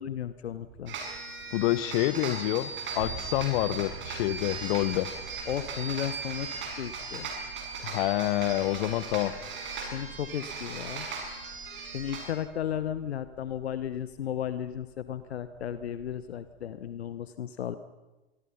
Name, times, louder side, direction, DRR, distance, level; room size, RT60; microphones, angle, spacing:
voice 1, 0.0-1.0 5.5-7.3 9.9-11.1 11.9-17.8, left 10 dB, 75° left, 13 dB, 1.0 m, -34 dB
sound 1, 0.5-17.1, right 6 dB, 70° right, 4.5 m, -49 dB
sound 2, 0.9-12.3, right 4 dB, 35° right, 7.2 m, -38 dB
voice 2, 1.5-5.1 7.8-9.3, left 16 dB, 55° left, 17 dB, 1.3 m, -27 dB
26.0 x 23.5 x 5.6 m, 1.1 s
figure-of-eight pair, 85°, 32 cm